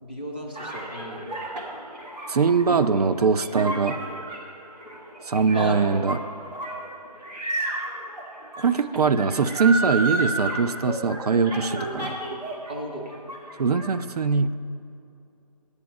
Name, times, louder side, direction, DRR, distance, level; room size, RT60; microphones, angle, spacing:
voice 1, 0.0-1.3 2.7-2.9 5.5-5.8 12.7-13.1, right 1 dB, 15° right, -2 dB, 0.6 m, -34 dB
sound 1, 0.5-12.7 13.0-13.9, right 2 dB, 90° right, 2.2 m, -32 dB
voice 2, 2.3-4.0 5.3-6.2 8.6-12.1 13.6-14.5, right 5 dB, 70° right, 12 dB, 0.5 m, -22 dB
9.6 x 8.3 x 5.2 m, 2.6 s
hypercardioid pair, 170°, 20 cm